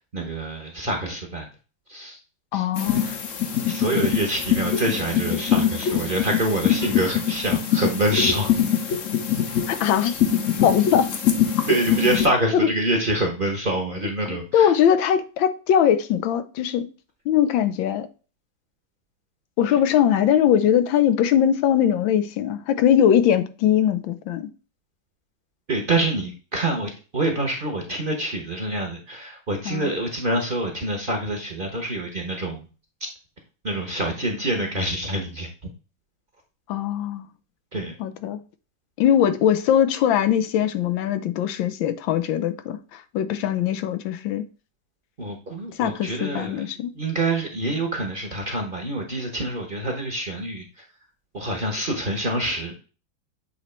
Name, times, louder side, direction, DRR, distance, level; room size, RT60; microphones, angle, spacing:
voice 1, 0.0-1.5 1.9-2.2 2.5-2.6 3.0-3.2 3.7-8.5 11.7-14.7 25.7-32.6 33.6-35.5 37.7-37.9 45.2-50.6 51.3-52.7, right 1 dB, 35° right, 0.9 m, -26 dB
voice 2, 2.5-3.1 9.7-10.2 10.6-11.1 14.3-16.8 17.3-18.1 19.6-24.5 29.7-29.9 36.7-37.3 38.0-38.4 39.0-44.5 45.8-46.9, left 9 dB, 90° left, 1.4 m, -21 dB
sound 1, 2.8-12.3, left 9 dB, 55° left, 1.0 m, -23 dB
8.1 x 3.0 x 4.3 m
omnidirectional pair, 2.1 m